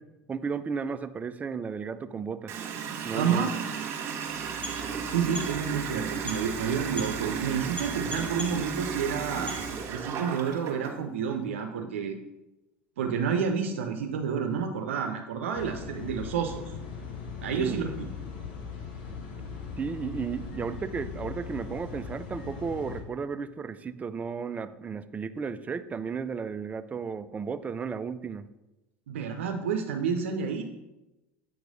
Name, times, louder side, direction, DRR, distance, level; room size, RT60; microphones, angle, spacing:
voice 1, 0.3-2.6 3.0-3.5 17.5-17.8 19.8-28.5, right 5 dB, 25° right, 12 dB, 0.4 m, -34 dB
Water tap faucet, 2.5-11.0, right 7 dB, 50° right, 1.4 m, -35 dB
voice 2, 3.1-3.5 5.1-9.5 9.9-12.2 13.0-16.7 17.4-18.1 29.1-30.6, right 6 dB, 90° right, 4 dB, 0.6 m, -29 dB
sound 1, 4.3-10.1, equal, 25° left, 2.4 m, -41 dB
sound 2, 15.5-23.0, left 5 dB, 75° left, 1.2 m, -39 dB
7.8 x 3.1 x 5.2 m, 0.99 s
hypercardioid pair, 90°, 6 cm